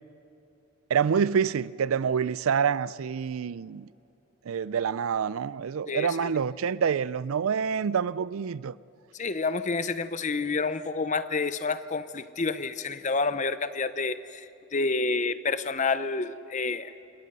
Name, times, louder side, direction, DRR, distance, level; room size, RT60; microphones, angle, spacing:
voice 1, 0.9-3.9 4.5-8.8, right 7 dB, 80° right, 0.4 m, -27 dB
voice 2, 5.9-6.3 9.2-14.5 14.7-16.9, left 4 dB, 35° left, 0.7 m, -29 dB
27.0 x 21.0 x 5.5 m
head